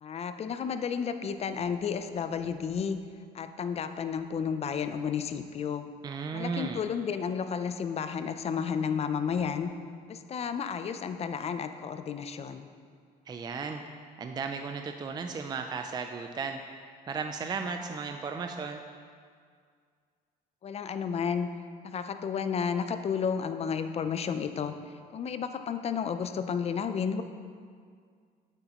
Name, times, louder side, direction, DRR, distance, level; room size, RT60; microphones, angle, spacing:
voice 1, 0.0-3.0 3.3-5.8 6.3-9.7 10.1-12.7 20.6-21.5 21.8-24.7 25.1-27.2, left 6 dB, 40° left, 9 dB, 0.5 m, -32 dB
voice 2, 6.0-6.8 13.3-13.8 14.2-16.6 17.1-18.8, right 5 dB, 25° right, 5 dB, 0.4 m, -35 dB
8.8 x 8.0 x 3.0 m, 2.1 s
cardioid pair, 110°, 17 cm